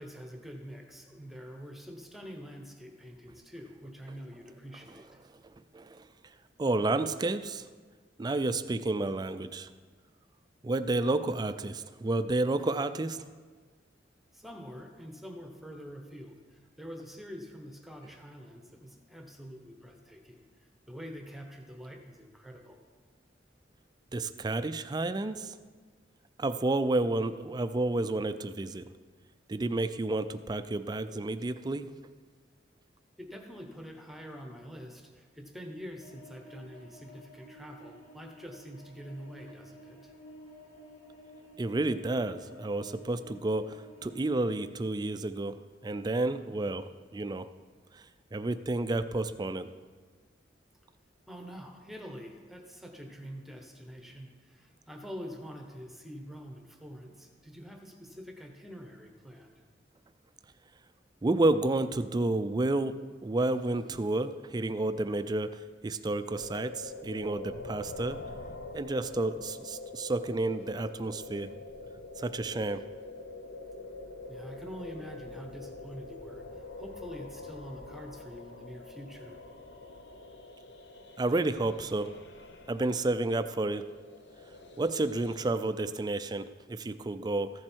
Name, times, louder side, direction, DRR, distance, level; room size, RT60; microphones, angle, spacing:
voice 1, 0.0-5.2 14.3-22.8 33.2-40.1 51.3-59.6 74.3-79.4, equal, ahead, 3 dB, 1.0 m, -46 dB
voice 2, 6.6-7.6 8.2-9.7 10.6-13.2 24.1-25.5 26.4-28.9 29.5-31.9 41.6-47.5 47.9-48.0 48.3-49.7 61.2-68.2 68.7-71.5 72.2-72.8 81.2-82.1 82.7-83.8 84.8-87.5, right 2 dB, 20° right, 11 dB, 0.4 m, -30 dB
sound 1, 36.0-44.7, left 1 dB, 40° left, 2.7 m, -53 dB
sound 2, 66.3-85.5, left 3 dB, 70° left, 0.8 m, -45 dB
14.5 x 7.5 x 4.5 m, 1.5 s
head